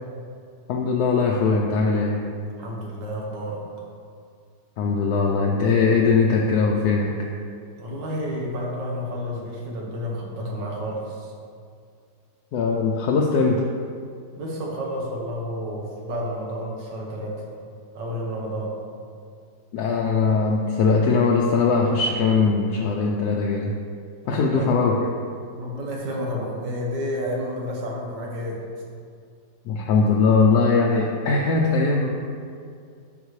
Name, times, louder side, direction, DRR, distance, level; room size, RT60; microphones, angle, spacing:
voice 1, 0.7-2.3 4.8-7.1 12.5-13.6 19.7-23.7 24.3-25.0 29.7-32.1, left 4 dB, 70° left, -1 dB, 1.0 m, -20 dB
voice 2, 2.6-3.6 7.8-11.3 14.4-17.4 17.9-18.7 24.2-24.7 25.6-28.6, equal, 75° right, -2 dB, 1.8 m, -30 dB
11.0 x 4.0 x 3.1 m, 2.2 s
omnidirectional pair, 1.9 m